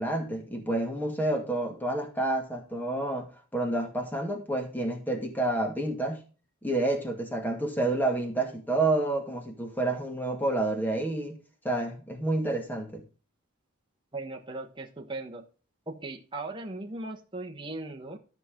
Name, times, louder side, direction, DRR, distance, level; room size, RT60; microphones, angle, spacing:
voice 1, 0.0-6.2 6.6-11.4 11.6-13.0, right 2 dB, 10° left, 4 dB, 2.0 m, -29 dB
voice 2, 14.1-15.4 15.9-18.2, right 2 dB, 25° right, 2 dB, 1.4 m, -38 dB
13.5 x 6.1 x 3.8 m, 0.37 s
head